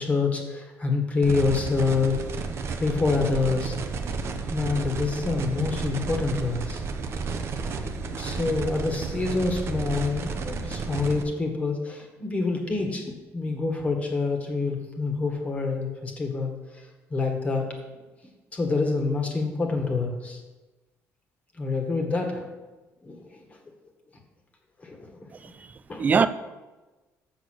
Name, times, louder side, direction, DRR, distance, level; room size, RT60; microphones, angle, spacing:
voice 1, 0.0-2.2 2.8-3.7 4.5-6.8 8.2-16.5 17.1-17.7 18.5-20.4 21.6-22.5 23.0-23.6 24.8-25.3 25.9-26.0, left 3 dB, 25° left, 1.6 m, -27 dB
sound 1, 1.2-11.2, right 4 dB, 50° right, 0.8 m, -32 dB
voice 2, 25.3-26.3, right 5 dB, 30° right, 0.4 m, -24 dB
6.7 x 6.5 x 6.3 m
cardioid pair, 120°, 6 cm